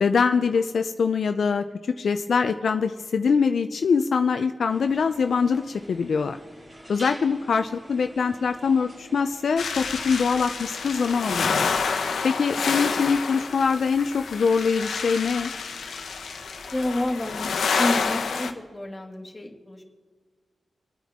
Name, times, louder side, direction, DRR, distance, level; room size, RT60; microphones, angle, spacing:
voice 1, 0.0-6.4 6.9-11.8 12.2-15.5, left 5 dB, 70° left, 7 dB, 0.5 m, -23 dB
sound 1, 4.7-18.5, equal, 25° right, 2.7 m, -47 dB
sound 2, 9.6-18.5, left 5 dB, 85° left, 1.1 m, -28 dB
voice 2, 16.7-17.5 17.8-19.8, left 1 dB, 15° left, 0 dB, 2.1 m, -29 dB
27.5 x 9.2 x 3.6 m, 1.5 s
wide cardioid pair, 110°, 0 cm